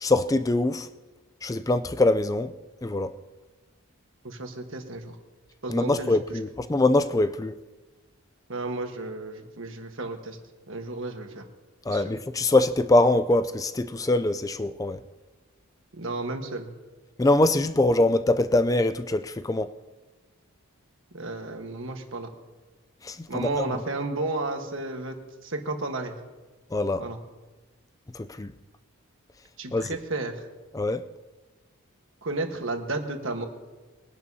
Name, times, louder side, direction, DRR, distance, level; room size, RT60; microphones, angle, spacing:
voice 1, 0.0-0.9 1.4-2.5 2.8-3.1 5.7-7.6 11.9-15.0 17.2-19.7 23.0-23.8 26.7-27.0 28.1-28.5 29.7-30.0 30.7-31.1, left 2 dB, 15° left, 0.3 m, -23 dB
voice 2, 4.2-5.2 5.6-6.4 8.5-10.4 10.7-11.4 11.9-12.0 16.0-16.7 21.1-22.3 23.3-25.1 25.4-26.1 26.9-27.2 29.6-30.3 32.2-33.5, right 2 dB, 60° right, 1.4 m, -32 dB
22.0 x 11.0 x 2.8 m
head